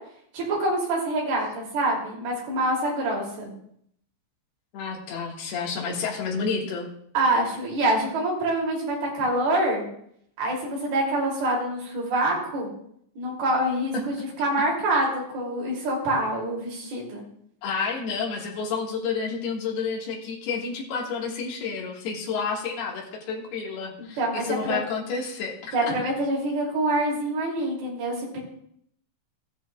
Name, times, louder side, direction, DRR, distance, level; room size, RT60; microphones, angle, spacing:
voice 1, 0.3-3.5 7.1-9.8 10.4-12.7 13.2-17.2 24.2-24.8 25.7-28.4, right 1 dB, 55° right, -3 dB, 4.3 m, -26 dB
voice 2, 4.7-6.9 13.9-14.0 17.6-25.9, left 5 dB, 65° left, -1 dB, 3.1 m, -30 dB
15.0 x 10.5 x 2.3 m, 0.69 s
omnidirectional pair, 5.9 m